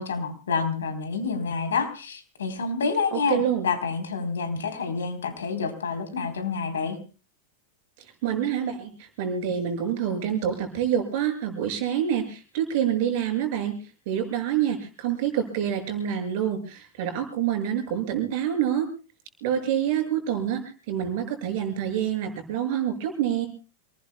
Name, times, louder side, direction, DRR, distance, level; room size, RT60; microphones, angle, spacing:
voice 1, 0.0-7.0, left 5 dB, 65° left, 7 dB, 3.7 m, -28 dB
voice 2, 3.1-3.7 8.2-13.7 14.1-18.9 19.4-20.6 20.9-23.5, right 9 dB, 50° right, 5 dB, 6.6 m, -27 dB
29.0 x 20.0 x 2.3 m, 0.36 s
figure-of-eight pair, 90°, 0 cm